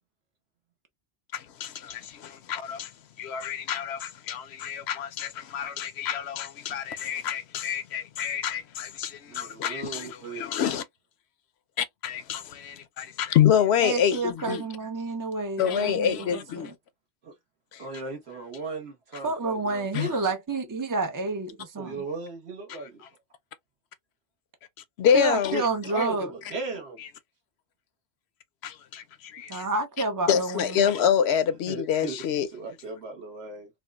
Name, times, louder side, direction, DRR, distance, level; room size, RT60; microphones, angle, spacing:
voice 1, 1.3-2.9 3.2-10.8 11.8-14.6 15.6-16.7 17.7-17.9 19.1-19.2 19.9-20.1 22.7-22.9 25.0-25.7 26.0-26.1 27.0-27.1 28.6-29.7 30.3-32.5, left 8 dB, 75° left, 0.8 m, -27 dB
voice 2, 9.3-10.4 17.2-17.3 17.8-20.2 21.8-23.0 25.8-27.0 31.7-32.2 32.5-33.7, right 4 dB, 70° right, 1.3 m, -37 dB
voice 3, 13.8-16.7 19.2-22.0 25.1-26.3 29.5-30.8, right 3 dB, 35° right, 0.3 m, -29 dB
4.2 x 2.3 x 2.2 m
omnidirectional pair, 1.1 m